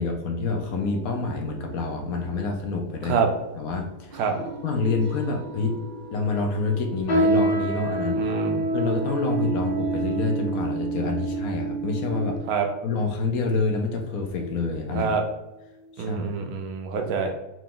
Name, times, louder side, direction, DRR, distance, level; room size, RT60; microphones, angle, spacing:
voice 1, 0.0-3.2 3.5-4.2 4.6-5.8 6.1-8.3 8.7-12.4 12.8-15.2 16.0-16.2, left 4 dB, 65° left, 2 dB, 1.0 m, -27 dB
sound 1, 0.7-12.4, right 6 dB, 45° right, 0.7 m, -34 dB
sound 2, 7.1-12.7 13.4-13.6 14.3-14.6 15.0-15.1 15.9-16.0, right 1 dB, 50° left, 0.7 m, -28 dB
voice 2, 8.2-8.6 12.5-12.7 14.9-15.2 16.0-17.3, right 6 dB, 70° right, 4 dB, 1.0 m, -26 dB
4.7 x 2.3 x 3.7 m, 0.95 s
omnidirectional pair, 1.7 m